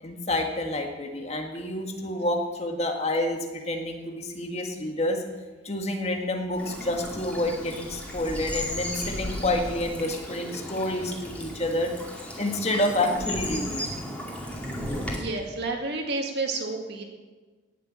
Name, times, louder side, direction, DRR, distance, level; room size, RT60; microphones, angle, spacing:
voice 1, 0.0-5.2 5.6-11.9 12.4-13.9, left 1 dB, 35° left, 2 dB, 1.8 m, -28 dB
Bird vocalization bird call bird song / Stream, 6.5-15.2, equal, 5° left, 2.3 m, -35 dB
voice 2, 15.1-17.0, right 3 dB, 60° right, 2 dB, 2.2 m, -30 dB
18.0 x 6.9 x 7.5 m, 1.3 s
head